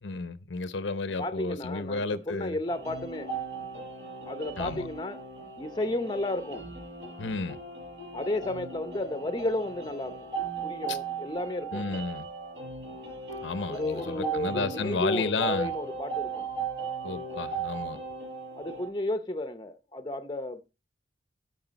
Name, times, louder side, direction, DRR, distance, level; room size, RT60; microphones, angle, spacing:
voice 1, 0.0-2.6 4.6-4.8 7.2-7.6 10.9-11.0 11.7-12.3 13.4-15.7 17.0-18.0, left 3 dB, 85° left, 0.7 m, -32 dB
voice 2, 1.2-3.3 4.3-5.2 5.6-6.6 8.1-10.2 10.6-12.0 13.7-16.5 18.6-20.6, left 1 dB, 25° left, 0.6 m, -32 dB
sound 1, 2.7-18.9, right 5 dB, 70° right, 5.8 m, -37 dB
14.0 x 4.9 x 4.0 m
head